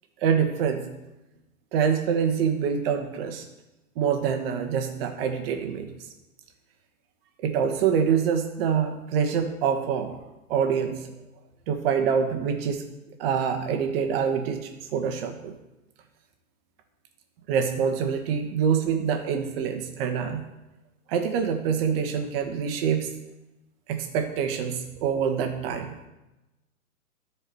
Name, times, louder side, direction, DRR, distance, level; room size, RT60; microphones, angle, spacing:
voice 1, 0.2-0.9 1.7-3.4 3.9-5.9 7.4-10.2 10.5-11.1 11.7-12.8 13.2-15.5 17.5-20.4 21.1-23.1 23.9-25.9, right 7 dB, 40° right, 5 dB, 1.4 m, -25 dB
13.5 x 4.9 x 4.7 m, 1.0 s
hypercardioid pair, 135°, 44 cm